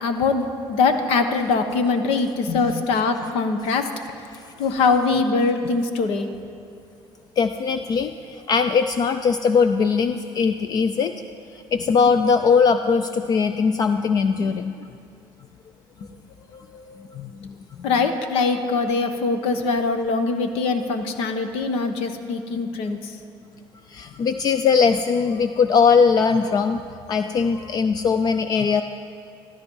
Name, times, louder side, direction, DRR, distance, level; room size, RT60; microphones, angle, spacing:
voice 1, 0.0-3.9 4.6-6.3 17.8-23.1, left 4 dB, 85° left, 7 dB, 1.2 m, -22 dB
voice 2, 2.5-2.8 7.4-11.1 11.7-14.8 16.5-17.5 23.9-26.8 27.1-28.8, left 5 dB, 40° left, 9 dB, 0.5 m, -20 dB
13.5 x 13.5 x 5.6 m, 2.6 s
cardioid pair, 140°, 10 cm